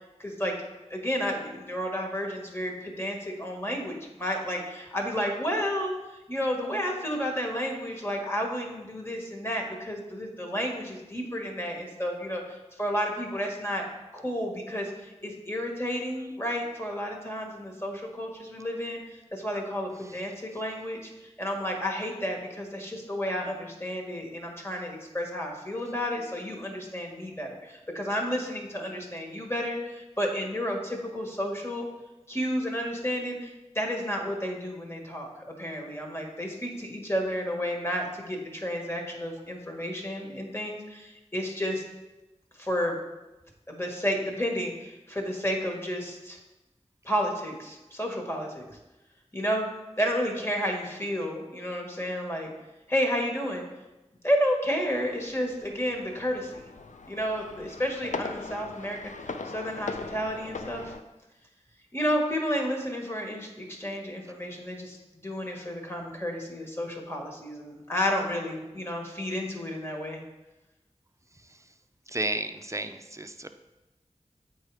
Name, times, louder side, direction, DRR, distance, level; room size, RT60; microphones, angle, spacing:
voice 1, 0.2-0.5 0.9-5.9 6.3-13.8 14.1-19.0 19.3-21.1 21.4-31.9 32.3-33.5 33.7-41.8 42.6-43.0 43.7-46.4 47.0-48.7 49.3-49.7 50.0-52.5 52.9-53.6 54.2-56.7 57.1-59.1 59.4-60.9 61.9-65.0 65.2-70.2, equal, 20° left, 0 dB, 1.7 m, -31 dB
sound 1, 54.7-61.0, left 4 dB, 85° left, 0.5 m, -40 dB
voice 2, 72.1-73.5, right 2 dB, 25° right, 8 dB, 0.6 m, -33 dB
7.9 x 4.7 x 4.9 m, 1.0 s
wide cardioid pair, 40°, 12 cm